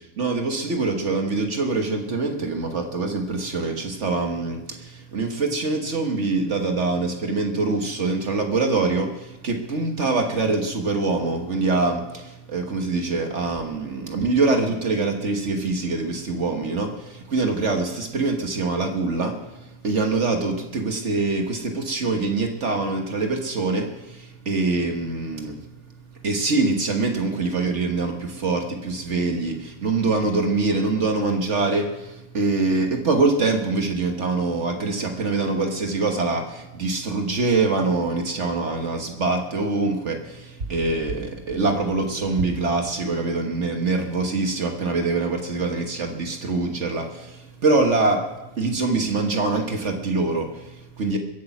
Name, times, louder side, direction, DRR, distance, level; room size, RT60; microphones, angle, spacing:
voice 1, 0.0-25.6 26.2-51.2, right 3 dB, 55° right, 4 dB, 1.6 m, -24 dB
22.5 x 8.5 x 6.0 m, 1.0 s
omnidirectional pair, 1.5 m